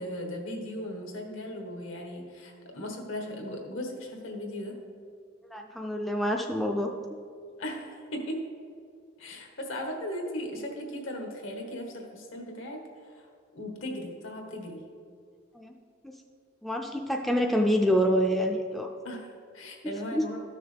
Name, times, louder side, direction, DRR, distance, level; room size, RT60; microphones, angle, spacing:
voice 1, 0.0-4.8 7.6-8.4 9.2-13.3 13.5-14.8 19.0-20.4, left 1 dB, 75° left, 2 dB, 1.4 m, -37 dB
voice 2, 5.5-6.9 15.5-15.7 16.0-16.1 16.6-18.9 20.1-20.2, equal, ahead, 2 dB, 0.3 m, -26 dB
13.0 x 6.5 x 3.4 m, 2.3 s
head